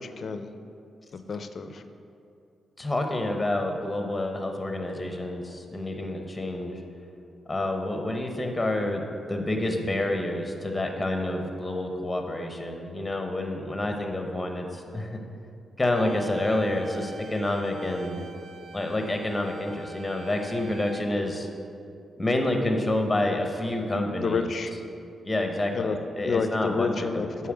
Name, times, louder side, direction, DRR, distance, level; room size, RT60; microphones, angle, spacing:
voice 1, 0.0-0.5 1.1-1.8 24.2-24.7 25.7-26.0 26.2-27.5, left 5 dB, 50° left, 9 dB, 0.4 m, -29 dB
voice 2, 2.8-6.8 7.5-9.0 9.3-15.2 15.8-18.2 18.7-21.5 22.2-24.5 25.2-27.5, left 1 dB, 15° left, 4 dB, 0.7 m, -28 dB
sound 1, 16.0-21.0, right 3 dB, 60° right, 0.4 m, -44 dB
6.9 x 4.4 x 4.9 m, 2.5 s
cardioid pair, 120°, 0 cm